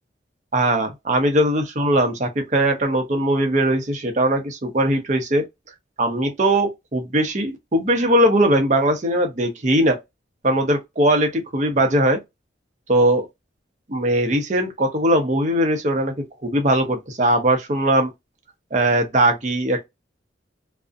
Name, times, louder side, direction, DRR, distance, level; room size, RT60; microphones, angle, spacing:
voice 1, 0.5-5.5 6.0-10.0 10.4-12.2 12.9-13.3 13.9-16.1 16.4-18.1 18.7-19.8, right 1 dB, 40° right, 0.6 m, -20 dB
2.5 x 2.0 x 2.4 m
head